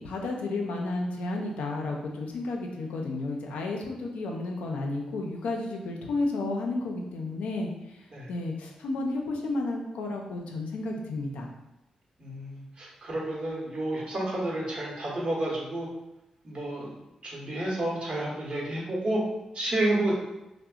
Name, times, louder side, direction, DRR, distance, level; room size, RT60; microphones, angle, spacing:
voice 1, 0.0-11.5, left 2 dB, 90° left, 1 dB, 0.4 m, -32 dB
voice 2, 12.2-15.9 16.4-16.9 17.2-19.2 19.5-20.1, right 1 dB, 60° right, -4 dB, 0.9 m, -30 dB
2.7 x 2.0 x 2.3 m, 0.93 s
cardioid pair, 55°, 2 cm